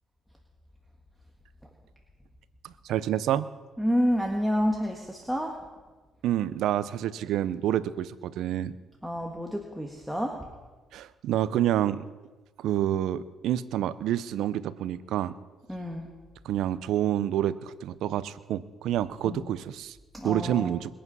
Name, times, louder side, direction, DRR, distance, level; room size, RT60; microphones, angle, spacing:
voice 1, 2.6-3.5 6.2-8.7 10.9-12.0 12.6-15.3 16.4-20.0 20.2-20.9, right 11 dB, 75° right, 15 dB, 0.6 m, -28 dB
voice 2, 3.8-5.5 9.0-10.4 15.7-16.1 19.2-19.4 20.1-20.7, equal, ahead, 0 dB, 1.7 m, -29 dB
21.5 x 8.6 x 5.5 m, 1.3 s
cardioid pair, 85°, 0 cm